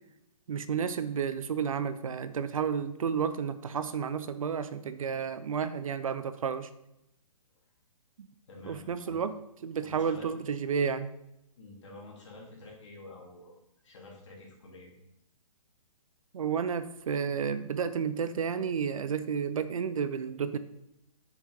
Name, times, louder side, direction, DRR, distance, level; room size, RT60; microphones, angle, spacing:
voice 1, 0.5-6.7 8.6-9.4 9.6-11.1 16.3-20.6, right 6 dB, 60° right, 13 dB, 0.5 m, -31 dB
voice 2, 8.5-9.2 9.8-10.3 11.6-13.5 13.8-14.9, left 2 dB, 50° left, -3 dB, 2.4 m, -49 dB
6.7 x 5.5 x 3.8 m, 0.83 s
hypercardioid pair, 175°, 19 cm